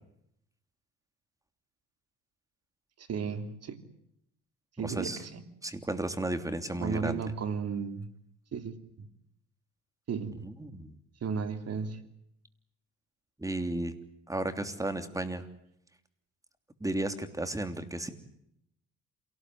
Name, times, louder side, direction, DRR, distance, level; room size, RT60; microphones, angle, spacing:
voice 1, 3.0-3.8 4.8-5.4 6.8-8.1 8.5-9.1 10.1-10.5 11.2-12.0, right 5 dB, 55° right, 8 dB, 3.1 m, -34 dB
voice 2, 4.8-5.2 5.6-7.2 10.4-10.9 13.4-13.9 14.3-15.5 16.8-18.1, right 1 dB, 10° right, 9 dB, 3.1 m, -33 dB
28.0 x 18.5 x 9.6 m, 0.76 s
cardioid pair, 90°, 30 cm